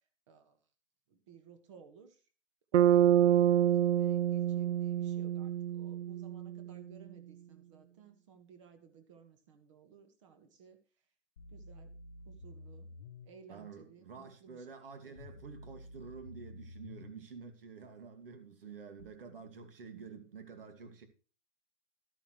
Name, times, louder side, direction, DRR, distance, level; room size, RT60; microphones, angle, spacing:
voice 1, 0.3-0.6 1.1-2.2 2.7-10.8 11.5-11.9 12.2-12.9 13.2-14.7 15.0-15.4, right 6 dB, 25° right, 1.5 m, -56 dB
Bass guitar, 2.7-6.8, right 11 dB, 70° right, 0.5 m, -27 dB
sound 1, 11.4-13.3 15.2-17.2 19.0-19.1, left 1 dB, 20° left, 0.7 m, -50 dB
voice 2, 13.5-21.1, right 5 dB, 50° right, 2.5 m, -49 dB
13.5 x 9.1 x 3.1 m
hypercardioid pair, 165°, 37 cm